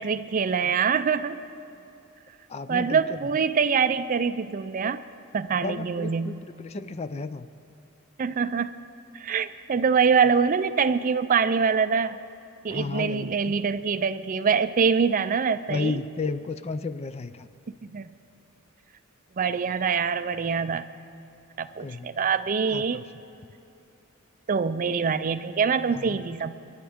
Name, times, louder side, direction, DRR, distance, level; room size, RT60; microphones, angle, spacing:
voice 1, 0.0-1.4 2.7-5.0 5.3-6.4 8.2-8.7 9.1-12.2 12.6-16.0 17.8-18.1 19.4-20.9 21.6-23.0 24.5-26.6, right 6 dB, 40° right, 13 dB, 0.4 m, -24 dB
voice 2, 2.5-3.2 5.6-7.5 12.7-13.3 15.7-17.5 21.8-22.1 22.7-23.0 25.9-26.2, left 3 dB, 30° left, 12 dB, 0.4 m, -33 dB
29.5 x 11.5 x 3.6 m, 2.8 s
head